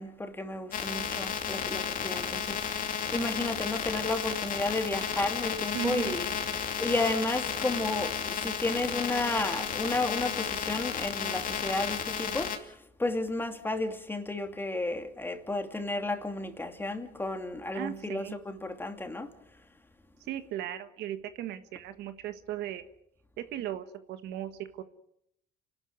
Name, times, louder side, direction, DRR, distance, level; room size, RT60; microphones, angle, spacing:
voice 1, 0.0-2.8 3.1-6.3 6.8-12.5 13.0-19.3, left 2 dB, 10° left, 2.6 m, -32 dB
sound 1, 0.7-12.6, left 7 dB, 55° left, 2.5 m, -33 dB
voice 2, 5.7-6.2 17.7-18.4 20.2-22.9 23.4-24.5 24.8-24.9, right 11 dB, 80° right, 1.6 m, -37 dB
29.5 x 12.5 x 9.6 m
cardioid pair, 110°, 17 cm